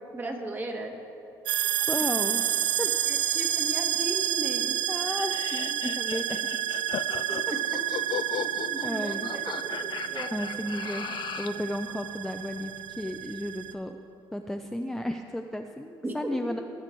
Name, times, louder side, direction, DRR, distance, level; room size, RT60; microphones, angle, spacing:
voice 1, 0.1-0.9 2.0-2.1 3.1-4.8 7.5-7.6 8.4-9.4 9.8-10.3 16.0-16.6, right 1 dB, 25° right, 3 dB, 1.6 m, -36 dB
sound 1, 1.5-13.7, right 11 dB, 85° right, 0.7 m, -30 dB
voice 2, 1.9-2.4 2.8-2.9 4.9-6.8 8.8-9.3 10.3-11.1 11.4-14.0 14.3-16.6, left 1 dB, 5° left, 4 dB, 0.5 m, -33 dB
sound 2, 5.1-11.6, left 10 dB, 60° left, 0.4 m, -37 dB
20.5 x 7.6 x 4.5 m, 2.9 s
cardioid pair, 110°, 9 cm